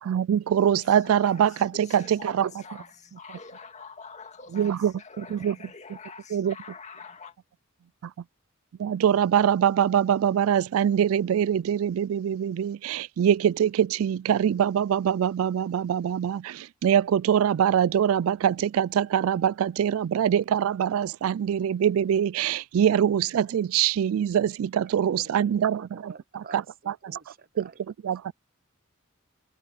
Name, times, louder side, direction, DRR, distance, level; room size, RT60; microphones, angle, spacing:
voice 1, 0.0-2.5 4.5-5.6 6.3-6.5 8.0-8.1 8.8-26.9 27.6-27.7 28.0-28.3, right 9 dB, 70° right, 0.3 m, -24 dB
voice 2, 0.7-7.4, left 5 dB, 35° left, 2.2 m, -46 dB
voice 3, 24.9-27.8, right 5 dB, 45° right, 0.8 m, -48 dB
head